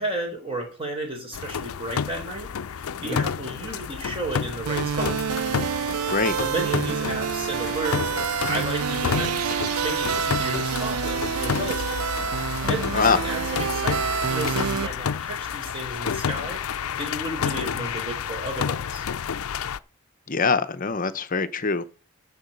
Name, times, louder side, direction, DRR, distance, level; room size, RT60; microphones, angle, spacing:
voice 1, 0.0-5.1 6.4-9.6 9.8-12.0 12.7-19.1, right 1 dB, 25° right, 4.0 m, -33 dB
sound 1, 1.3-19.8, left 7 dB, 80° left, 0.5 m, -30 dB
sound 2, 4.7-14.9, right 8 dB, 80° right, 0.4 m, -28 dB
voice 2, 20.3-21.8, left 5 dB, 40° left, 0.7 m, -23 dB
10.5 x 6.8 x 5.5 m
head